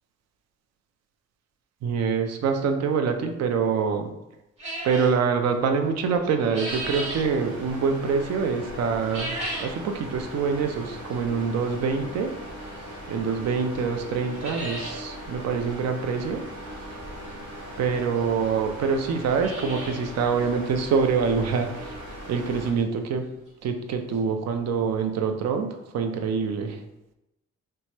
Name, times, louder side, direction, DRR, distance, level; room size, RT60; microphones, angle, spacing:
voice 1, 1.8-4.1 4.8-12.3 13.1-16.4 17.8-22.0 22.3-23.2 23.6-25.7 25.9-26.8, right 5 dB, 60° right, 6 dB, 0.4 m, -25 dB
sound 1, 4.6-5.2 6.1-7.3 9.0-9.8 10.2-10.3 11.1-11.2 12.9-13.0 13.4-13.5 13.8-13.9 14.2-15.0 15.3-15.4 15.6-15.7 17.3-17.4 18.2-18.3 18.5-18.6 19.1-20.1 20.4-20.5 21.0-21.1 21.5-21.6 23.3-23.4 23.6-23.7 24.1-24.2, right 1 dB, 20° right, 1.2 m, -34 dB
sound 2, 6.7-22.7, equal, 80° right, 1.0 m, -39 dB
2.9 x 2.2 x 2.9 m, 0.92 s
cardioid pair, 90°, 30 cm